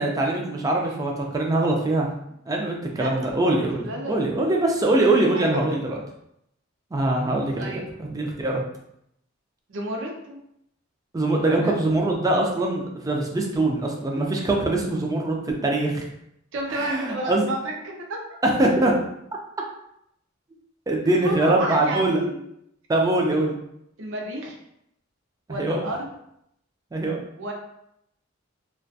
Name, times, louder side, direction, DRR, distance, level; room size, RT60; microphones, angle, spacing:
voice 1, 0.0-2.1 2.5-6.0 6.9-8.6 11.1-16.0 16.7-17.5 18.4-18.9 20.9-22.2 22.9-23.5 25.6-25.8 26.9-27.2, right 2 dB, 20° right, 0 dB, 0.4 m, -23 dB
voice 2, 3.0-4.3 5.0-5.5 7.6-7.9 9.7-10.4 11.4-11.8 16.5-18.2 21.0-22.4 23.3-23.5 24.0-24.6 25.5-26.1 27.4-27.5, right 1 dB, 70° right, 0 dB, 0.5 m, -31 dB
2.3 x 2.2 x 2.6 m, 0.76 s
head